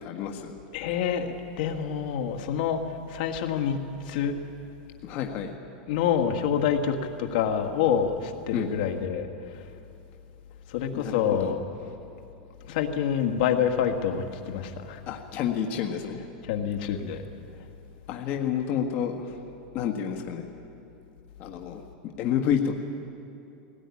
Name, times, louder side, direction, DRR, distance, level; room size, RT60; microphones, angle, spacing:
voice 1, 0.0-0.5 5.0-5.5 8.5-8.7 10.9-11.1 11.4-11.5 15.1-16.3 18.1-19.4 19.7-20.4 21.4-21.8 22.2-22.8, left 8 dB, 40° left, 2 dB, 1.6 m, -29 dB
voice 2, 0.7-3.8 4.1-4.4 5.9-9.7 10.7-11.6 12.7-15.0 16.4-17.2, left 8 dB, 65° left, 5 dB, 1.9 m, -27 dB
20.5 x 18.0 x 9.8 m, 2.7 s
supercardioid pair, 150°, 5 cm